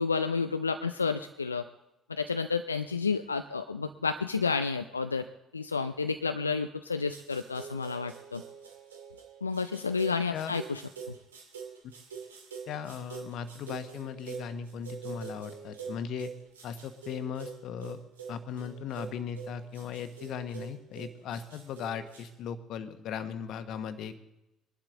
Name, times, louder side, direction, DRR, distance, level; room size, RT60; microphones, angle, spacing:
voice 1, 0.0-1.6 2.1-5.3 5.5-8.4 9.4-10.8 11.1-11.2, left 4 dB, 90° left, 9 dB, 0.4 m, -30 dB
sound 1, 7.1-22.3, right 6 dB, 80° right, 2.2 m, -45 dB
voice 2, 12.7-16.3 16.6-18.0 18.3-24.2, left 7 dB, 60° left, 10 dB, 1.2 m, -38 dB
22.5 x 11.5 x 3.8 m, 0.93 s
figure-of-eight pair, 55°, 0 cm